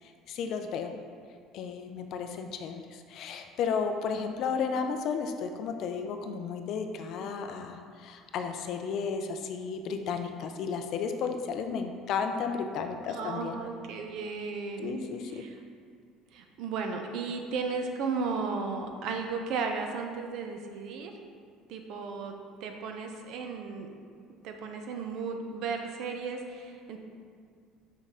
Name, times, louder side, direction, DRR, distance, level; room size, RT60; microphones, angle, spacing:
voice 1, 0.3-0.9 1.5-13.6 14.8-15.4, left 6 dB, 45° left, 6 dB, 0.4 m, -33 dB
voice 2, 13.1-15.0 15.3-15.6 16.3-21.1 21.7-22.3 22.6-23.9 24.4-27.0, right 4 dB, 50° right, 4 dB, 0.6 m, -35 dB
5.5 x 5.2 x 3.7 m, 2.1 s
cardioid pair, 175°, 0 cm